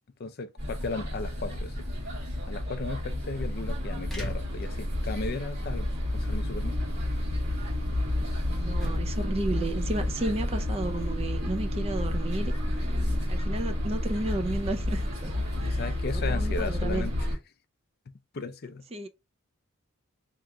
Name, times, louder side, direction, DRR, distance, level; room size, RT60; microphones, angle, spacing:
voice 1, 0.2-1.8 2.5-6.8 15.6-17.3 18.3-18.8, left 3 dB, 45° left, 0.4 m, -36 dB
sound 1, 0.6-17.4, left 1 dB, 50° right, 1.7 m, -30 dB
sound 2, 1.5-16.8, right 1 dB, ahead, 1.1 m, -49 dB
voice 2, 8.4-16.0 16.3-17.1 18.9-19.1, right 2 dB, 30° right, 0.4 m, -33 dB
3.4 x 2.9 x 3.7 m
head